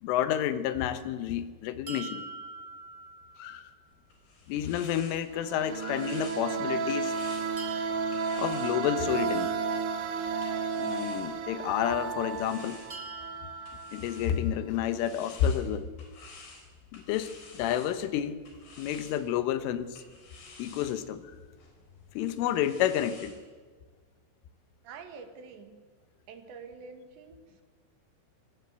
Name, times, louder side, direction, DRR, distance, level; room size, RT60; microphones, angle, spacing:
voice 1, 0.0-2.2 3.4-3.7 4.5-7.1 8.4-9.6 10.7-12.8 13.9-15.9 16.9-18.4 18.8-20.0 20.6-21.3 22.2-23.4, left 10 dB, 85° left, 12 dB, 3.7 m, -30 dB
sound 1, 1.9-3.8 7.6-9.6 12.9-14.9, right 3 dB, 35° right, 1.0 m, -44 dB
sound 2, 3.9-11.7 12.3-23.4, left 3 dB, 60° left, 6.0 m, -52 dB
sound 3, 5.3-13.9, right 5 dB, 90° right, 4.0 m, -33 dB
voice 2, 24.8-25.8 26.3-27.4, right 5 dB, 70° right, 7 dB, 4.0 m, -46 dB
25.5 x 18.0 x 8.1 m, 1.5 s
omnidirectional pair, 5.5 m